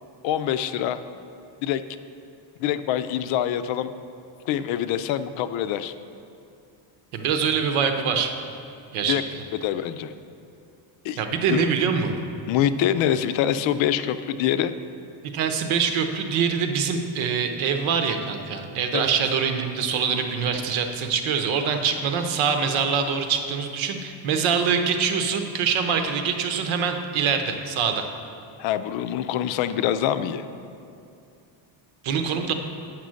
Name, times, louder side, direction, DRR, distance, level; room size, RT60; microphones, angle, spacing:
voice 1, 0.2-1.0 1.6-1.8 2.6-3.9 4.5-5.9 9.1-9.2 9.6-10.1 11.0-11.2 11.5-11.7 12.5-14.7 28.6-30.4, left 10 dB, 75° left, 12 dB, 0.5 m, -25 dB
voice 2, 7.1-8.3 8.9-9.2 11.2-12.1 15.2-28.1 32.0-32.5, right 6 dB, 85° right, 6 dB, 1.0 m, -24 dB
8.2 x 6.0 x 6.3 m, 2.5 s
cardioid pair, 175°, 47 cm